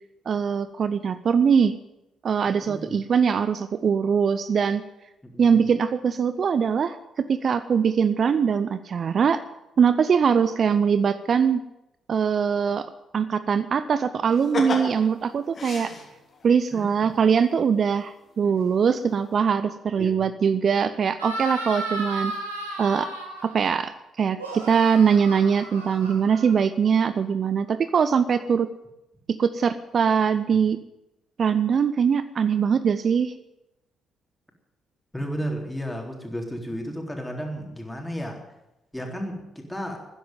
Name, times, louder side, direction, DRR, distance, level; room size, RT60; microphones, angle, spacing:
voice 1, 0.3-1.8 2.2-4.8 5.4-9.4 9.8-11.6 12.1-15.9 16.4-22.3 22.8-23.1 23.4-28.7 29.3-30.8 31.4-33.3, right 6 dB, 50° right, 13 dB, 0.6 m, -22 dB
voice 2, 2.5-3.0 5.2-5.7 16.7-17.1 20.0-20.1 30.5-30.6 35.1-38.4 38.9-40.0, equal, 10° left, 1 dB, 3.8 m, -33 dB
sound 1, 14.3-16.5 17.9-18.0 18.4-18.9 19.2-19.3, left 3 dB, 45° left, 3.2 m, -32 dB
sound 2, 21.2-23.7 24.3-26.9, right 2 dB, 90° right, 2.1 m, -34 dB
12.5 x 10.5 x 9.3 m, 0.91 s
figure-of-eight pair, 45°, 0 cm